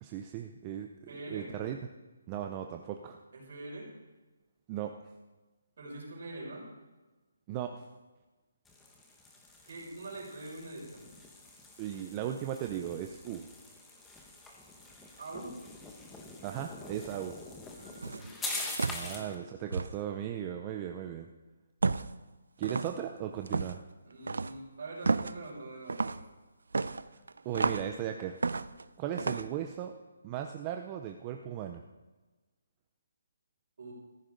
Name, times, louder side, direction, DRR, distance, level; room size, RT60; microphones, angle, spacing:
voice 1, 0.0-1.8 2.3-3.2 4.7-4.9 7.5-7.8 11.8-13.5 16.4-17.4 18.8-21.3 22.6-23.8 27.4-28.4 29.0-29.9 30.2-31.8, right 10 dB, 15° right, 4 dB, 0.5 m, -37 dB
voice 2, 1.1-1.5 3.3-3.9 5.8-6.7 9.6-11.0 15.2-15.5 17.7-19.3 24.0-26.2 33.8-33.9, right 2 dB, 45° right, -3 dB, 5.9 m, -44 dB
sound 1, 8.6-19.4, left 2 dB, 5° left, 0.9 m, -45 dB
sound 2, 18.0-18.3 18.8-19.1 19.7-19.9 21.8-22.2 22.6-23.0 23.5-23.8 24.3-24.6 25.0-25.4 25.9-26.2 26.7-27.9 28.4-28.8 29.2-29.5, right 4 dB, 85° right, 0.6 m, -31 dB
16.0 x 14.5 x 3.9 m, 1.2 s
hypercardioid pair, 175°, 0 cm